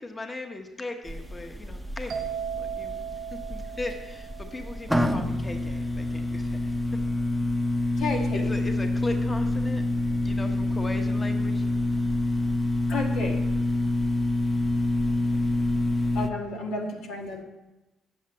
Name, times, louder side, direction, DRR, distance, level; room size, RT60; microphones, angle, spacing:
voice 1, 0.0-2.3 2.6-2.9 3.3-6.6 8.0-9.8 10.2-11.6, left 2 dB, 25° left, 5 dB, 1.0 m, -38 dB
sound 1, 1.1-16.3, left 2 dB, ahead, 0.8 m, -27 dB
sound 2, 2.1-5.7, right 8 dB, 70° right, 1.2 m, -37 dB
voice 2, 8.0-8.5 12.9-13.4 16.1-17.4, left 3 dB, 85° left, 1 dB, 1.7 m, -32 dB
8.0 x 7.2 x 7.5 m, 1.1 s
cardioid pair, 90°, 0 cm